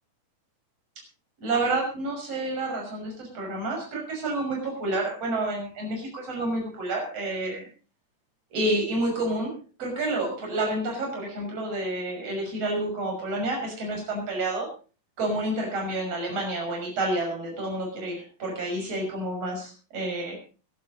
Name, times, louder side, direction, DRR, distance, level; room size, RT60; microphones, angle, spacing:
voice 1, 1.4-7.7 8.5-14.7 15.2-20.4, right 2 dB, 50° right, 1 dB, 7.1 m, -29 dB
23.0 x 11.5 x 4.1 m, 0.37 s
omnidirectional pair, 3.7 m